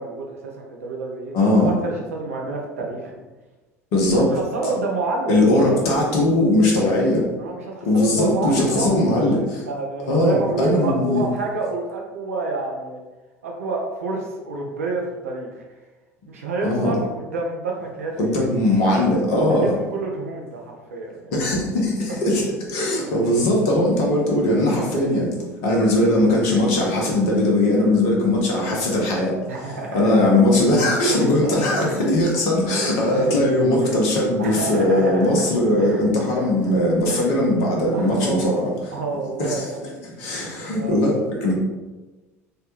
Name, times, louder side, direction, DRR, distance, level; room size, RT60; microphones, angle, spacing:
voice 1, 0.0-3.1 4.3-5.4 7.4-9.3 9.7-13.0 13.4-15.6 16.3-18.5 19.4-21.3 22.1-22.2 23.2-23.3 29.5-30.2 31.1-31.8 32.7-33.4 33.8-33.9 34.4-35.5 35.8-36.0 36.3-36.7 37.1-37.2 37.8-38.6 38.9-39.8 40.2-40.5 40.7-41.0, right 3 dB, 70° right, 0 dB, 0.4 m, -29 dB
voice 2, 1.3-1.7 3.9-4.3 5.3-7.2 7.8-9.6 10.1-11.2 16.6-16.9 18.2-19.7 21.3-25.3 25.6-29.4 29.9-38.7 39.4-39.7 40.2-41.5, left 1 dB, 55° left, -2 dB, 0.8 m, -19 dB
3.3 x 2.2 x 2.9 m, 1.2 s
figure-of-eight pair, 70°, 8 cm